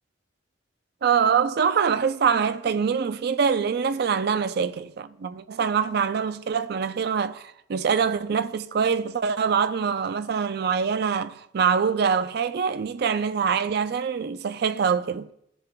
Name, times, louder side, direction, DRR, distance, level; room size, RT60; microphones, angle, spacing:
voice 1, 1.0-15.3, right 6 dB, 60° right, 0.4 m, -24 dB
15.5 x 6.9 x 2.2 m
head